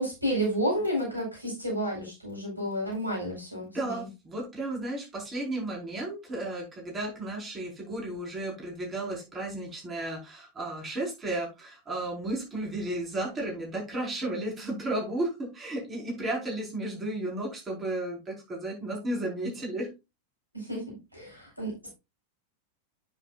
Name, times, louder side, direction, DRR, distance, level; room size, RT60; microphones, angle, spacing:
voice 1, 0.0-4.1 20.5-20.9 21.1-21.9, equal, 85° right, -2 dB, 5.1 m, -31 dB
voice 2, 3.6-19.9, right 1 dB, 20° right, -1 dB, 4.8 m, -33 dB
9.6 x 7.7 x 2.5 m, 0.24 s
figure-of-eight pair, 90°, 0 cm